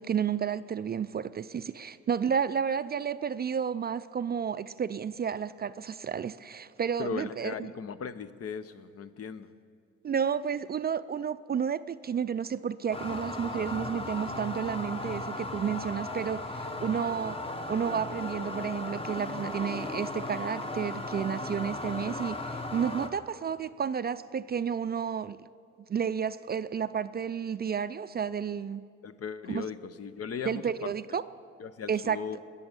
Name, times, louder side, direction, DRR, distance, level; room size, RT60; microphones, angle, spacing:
voice 1, 0.0-7.7 10.0-17.4 17.7-25.4 25.9-28.8 29.5-29.7 30.5-31.2 31.9-32.2, right 7 dB, 35° right, 0.4 m, -31 dB
voice 2, 7.0-9.5 29.0-30.9 31.6-32.4, left 6 dB, 50° left, 0.8 m, -38 dB
sound 1, 12.9-23.1, left 2 dB, 20° left, 1.1 m, -36 dB
20.0 x 7.0 x 8.8 m
cardioid pair, 90°, 30 cm